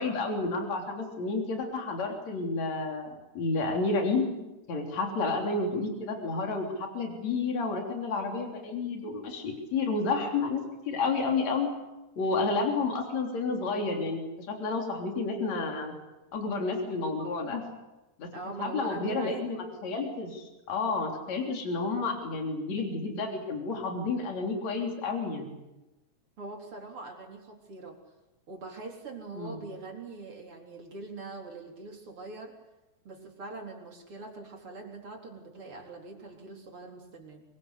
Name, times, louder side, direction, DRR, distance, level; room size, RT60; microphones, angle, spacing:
voice 1, 0.0-4.3 4.7-11.7 12.2-16.0 16.3-17.6 18.2-18.3 18.6-25.6 29.4-29.7, left 3 dB, 60° left, 2 dB, 4.6 m, -30 dB
voice 2, 18.3-19.5 26.4-28.0 28.5-32.6 33.0-37.4, right 3 dB, 45° right, 1 dB, 4.7 m, -42 dB
24.5 x 23.0 x 8.3 m, 1.0 s
omnidirectional pair, 3.5 m